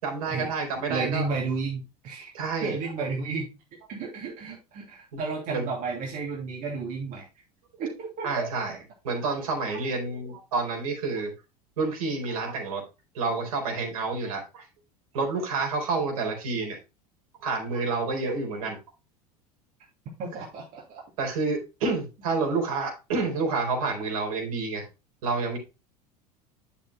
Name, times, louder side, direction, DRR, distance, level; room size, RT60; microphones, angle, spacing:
voice 1, 0.0-1.3 2.3-2.8 5.1-5.2 5.5-5.7 8.2-8.8 9.0-11.3 11.8-12.8 13.1-14.7 15.1-16.8 17.4-18.8 21.2-24.8 25.2-25.6, right 3 dB, 65° right, 1 dB, 4.3 m, -29 dB
voice 2, 0.9-2.3 2.6-3.5 3.9-7.3 7.8-8.5 20.2-21.0, right 4 dB, 40° right, -1 dB, 2.7 m, -32 dB
10.5 x 7.0 x 2.3 m, 0.28 s
figure-of-eight pair, 75°, 20 cm